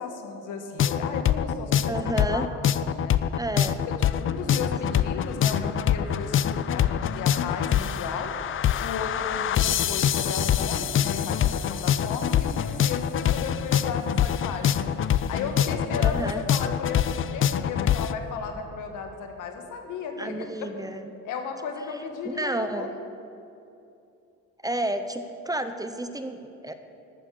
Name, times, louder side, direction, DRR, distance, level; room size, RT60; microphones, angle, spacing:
voice 1, 0.0-2.4 2.7-3.2 4.2-8.3 8.8-14.7 15.3-20.7 21.2-23.0, left 5 dB, 90° left, 5 dB, 1.5 m, -35 dB
sound 1, 0.8-18.1, left 9 dB, 45° left, 0.4 m, -25 dB
voice 2, 1.9-2.5 3.4-3.8 15.9-16.4 20.2-21.1 22.2-22.9 24.6-26.7, right 1 dB, 10° right, 9 dB, 0.7 m, -31 dB
12.5 x 6.7 x 7.6 m, 2.7 s
cardioid pair, 90°, 30 cm